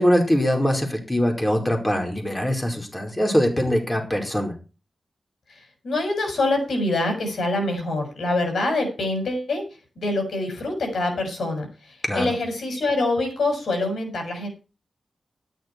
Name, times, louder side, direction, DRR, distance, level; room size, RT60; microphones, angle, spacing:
voice 1, 0.0-4.5 12.0-12.3, equal, 20° left, 2 dB, 4.9 m, -22 dB
voice 2, 5.5-9.6 10.0-14.5, left 2 dB, 80° left, 4 dB, 6.4 m, -25 dB
13.0 x 11.0 x 4.7 m, 0.33 s
cardioid pair, 65°, 0 cm